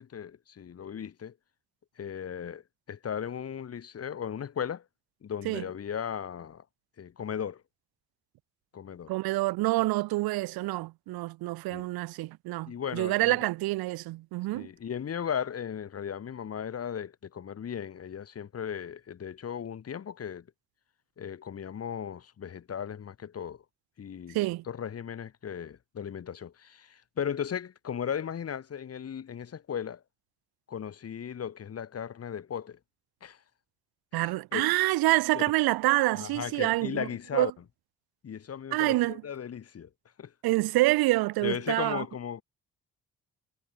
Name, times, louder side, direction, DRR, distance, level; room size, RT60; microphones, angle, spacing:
voice 1, 0.0-1.4 2.0-2.6 2.9-4.8 5.2-6.6 7.0-7.6 8.7-9.1 11.7-11.9 12.7-13.4 14.5-20.5 21.2-23.6 24.0-24.4 24.7-30.0 30.7-32.8 33.2-33.4 34.1-34.7 35.3-35.4 36.1-37.5 38.2-39.9 40.2-40.3 41.4-42.4, left 8 dB, 40° left, 1.0 m, -36 dB
voice 2, 9.1-14.7 24.3-24.6 34.1-37.1 37.3-37.5 38.7-39.2 40.4-42.0, right 19 dB, 70° right, 0.6 m, -27 dB
hypercardioid pair, 50°, 39 cm